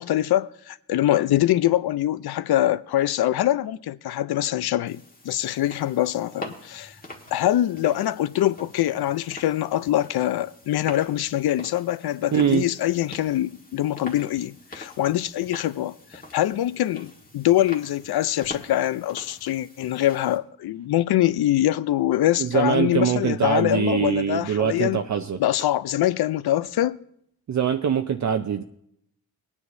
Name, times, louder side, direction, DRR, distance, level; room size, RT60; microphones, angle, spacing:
voice 1, 0.0-6.9 7.3-25.0 25.4-27.0, left 13 dB, 75° left, 0.5 m, -24 dB
sound 1, 4.9-20.4, left 1 dB, 20° left, 1.5 m, -44 dB
voice 2, 12.3-12.6 22.4-25.4 27.5-28.6, right 8 dB, 50° right, 0.6 m, -23 dB
20.0 x 9.7 x 2.6 m
wide cardioid pair, 110°, 38 cm